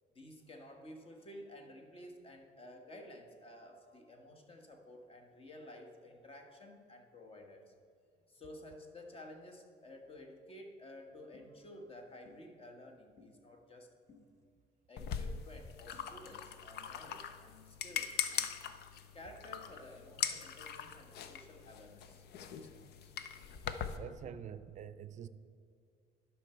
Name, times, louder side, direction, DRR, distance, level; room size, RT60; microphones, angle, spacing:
voice 1, 0.1-7.7 8.3-13.9 14.9-18.5 19.1-23.1, left 1 dB, 35° left, 1.5 m, -53 dB
sound 1, 11.3-11.5 12.2-12.4 13.2-13.3 14.1-14.2 15.0-15.1 15.9-16.1, left 5 dB, 15° left, 1.3 m, -59 dB
sound 2, 15.0-24.0, left 8 dB, 75° left, 0.6 m, -41 dB
voice 2, 24.0-25.3, right 9 dB, 45° right, 0.5 m, -46 dB
11.5 x 5.8 x 4.4 m
cardioid pair, 110°, 17 cm